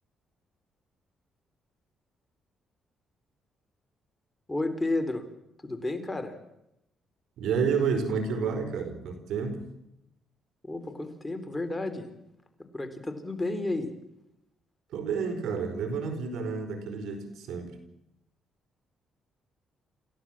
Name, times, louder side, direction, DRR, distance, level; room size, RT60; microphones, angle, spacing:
voice 1, 4.5-5.3 5.6-6.4 10.6-12.1 12.7-13.9, left 2 dB, 15° left, 7 dB, 3.9 m, -31 dB
voice 2, 7.4-9.7 14.9-17.8, right 5 dB, 80° right, 7 dB, 4.7 m, -30 dB
28.0 x 15.5 x 7.5 m, 0.85 s
cardioid pair, 90°, 0 cm